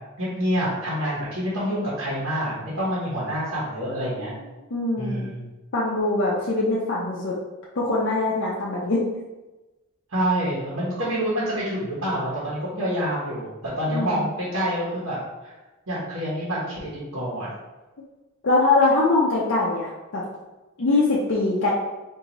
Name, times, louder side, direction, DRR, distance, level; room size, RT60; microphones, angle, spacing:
voice 1, 0.2-4.3 5.0-5.4 10.1-13.5 13.8-15.2 15.4-15.5 15.9-17.5, equal, 75° right, -8 dB, 1.1 m, -27 dB
voice 2, 4.7-5.3 5.7-7.3 7.8-9.0 13.9-14.3 18.4-20.2 20.8-21.7, left 2 dB, 60° left, -5 dB, 0.5 m, -22 dB
3.8 x 2.6 x 3.0 m, 1.1 s
head